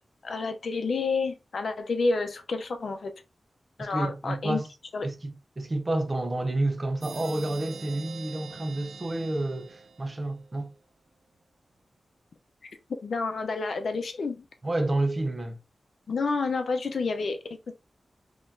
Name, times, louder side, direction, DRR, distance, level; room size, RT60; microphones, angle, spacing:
voice 1, 0.2-3.1 3.8-4.6 4.9-5.1 12.6-12.7 13.0-14.4 16.1-17.7, left 4 dB, 70° left, 0.6 m, -29 dB
voice 2, 3.8-4.7 5.0-10.7 14.6-15.6, right 2 dB, 30° right, 0.6 m, -29 dB
sound 1, 7.0-10.6, right 5 dB, 70° right, 0.3 m, -44 dB
3.9 x 3.0 x 2.6 m
wide cardioid pair, 135°, 0 cm